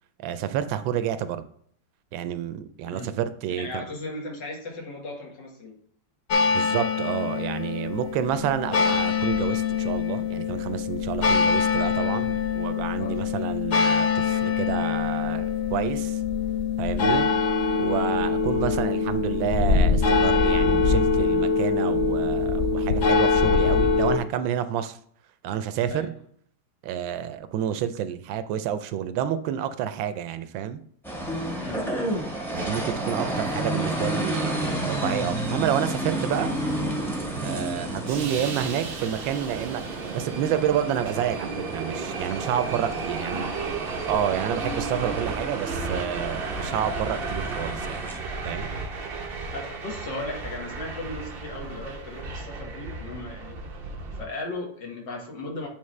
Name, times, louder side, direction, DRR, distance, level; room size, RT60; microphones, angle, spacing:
voice 1, 0.2-1.5 2.1-3.8 6.5-15.4 15.7-16.2 16.8-17.3 17.8-25.0 25.4-26.1 26.8-30.8 32.5-36.5 37.4-43.5 44.0-48.0 48.4-48.7, right 9 dB, 80° right, 11 dB, 1.3 m, -29 dB
voice 2, 3.5-5.7 13.0-13.4 17.1-17.3 25.9-26.2 31.6-31.9 43.2-43.7 49.5-53.6 54.1-55.7, left 2 dB, 65° left, 0 dB, 2.1 m, -37 dB
sound 1, 6.3-24.2, left 5 dB, 90° left, 0.6 m, -23 dB
sound 2, 31.0-48.2, right 1 dB, ahead, 0.9 m, -32 dB
Subway metro underground, 36.3-54.2, right 4 dB, 55° right, 0.6 m, -34 dB
8.8 x 3.9 x 3.2 m, 0.62 s
omnidirectional pair, 2.1 m